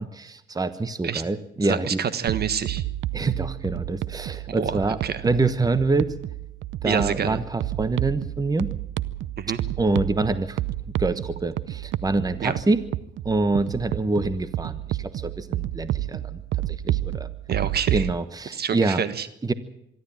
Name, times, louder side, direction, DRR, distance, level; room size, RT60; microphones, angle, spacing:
voice 1, 0.0-2.0 3.1-5.0 5.2-6.1 6.8-8.7 9.8-10.6 11.0-12.8 13.2-16.4 16.7-17.3 17.9-19.0 19.4-19.5, right 3 dB, 20° right, 13 dB, 1.2 m, -25 dB
voice 2, 1.6-2.8 4.5-5.2 6.8-7.4 9.4-9.6 12.4-12.6 17.5-18.1 18.5-19.3, right 7 dB, 55° right, 14 dB, 1.5 m, -27 dB
sound 1, 2.3-18.1, right 14 dB, 75° right, 0.7 m, -30 dB
24.5 x 12.5 x 9.0 m, 0.76 s
cardioid pair, 90°, 20 cm